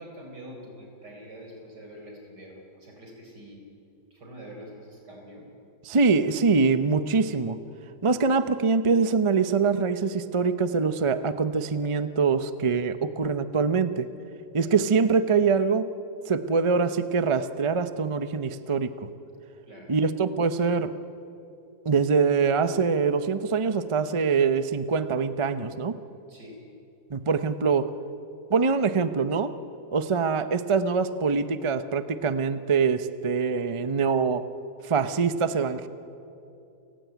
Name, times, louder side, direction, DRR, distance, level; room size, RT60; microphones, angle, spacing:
voice 1, 0.0-3.7 4.1-5.5 14.5-14.8 19.7-19.9 26.3-26.7, equal, 80° right, 2 dB, 5.3 m, -45 dB
voice 2, 5.9-7.6 8.0-14.1 14.5-15.9 16.3-19.1 19.9-20.9 21.8-26.0 27.1-27.9 28.5-29.5 29.9-34.4 34.8-35.9, right 5 dB, 30° right, 12 dB, 0.5 m, -24 dB
29.5 x 16.0 x 9.4 m, 2.8 s
omnidirectional pair, 1.8 m